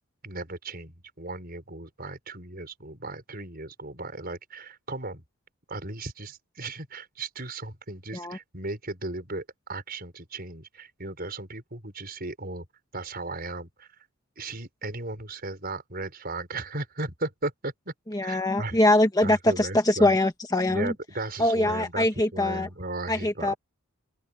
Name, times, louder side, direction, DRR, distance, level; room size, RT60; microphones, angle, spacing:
voice 1, 0.2-5.2 5.7-12.7 12.9-14.1 14.4-17.9 18.2-18.8 19.2-20.1 20.7-22.1 22.3-23.6, right 2 dB, 45° right, 5.5 m, -36 dB
voice 2, 18.1-20.9 21.4-22.7 23.1-23.5, left 1 dB, 15° left, 1.5 m, -23 dB
open air
head